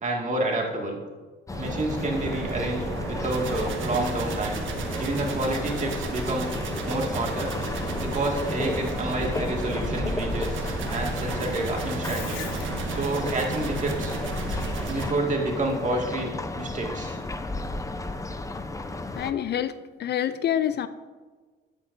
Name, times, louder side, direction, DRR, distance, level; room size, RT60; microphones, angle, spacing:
voice 1, 0.0-1.0 1.6-4.6 5.0-6.5 6.8-7.5 8.0-10.6 10.9-12.4 12.9-14.2 14.8-16.3 16.6-17.2, right 2 dB, 40° right, 0 dB, 2.2 m, -29 dB
sound 1, 1.5-19.3, left 2 dB, 15° left, 0.7 m, -33 dB
sound 2, 1.5-15.1, right 3 dB, 75° right, 1.5 m, -33 dB
Bathtub (filling or washing), 12.0-17.4, left 8 dB, 85° left, 1.1 m, -45 dB
voice 2, 19.2-19.7 20.0-20.9, left 10 dB, 55° left, 13 dB, 0.5 m, -26 dB
12.5 x 9.2 x 2.7 m, 1.3 s
cardioid pair, 90°, 20 cm